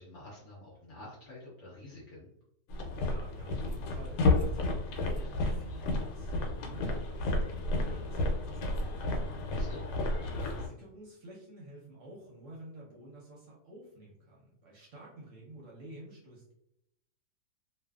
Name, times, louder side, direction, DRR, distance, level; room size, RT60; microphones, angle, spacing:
voice 1, 0.0-2.3 9.5-9.9, left 2 dB, 60° left, -5 dB, 0.8 m, -48 dB
sound 1, 2.7-10.7, left 2 dB, 80° left, 1.2 m, -31 dB
voice 2, 3.0-9.2 9.6-9.7 10.2-16.5, right 1 dB, 60° right, -4 dB, 0.9 m, -51 dB
2.5 x 2.4 x 2.3 m, 0.81 s
omnidirectional pair, 1.8 m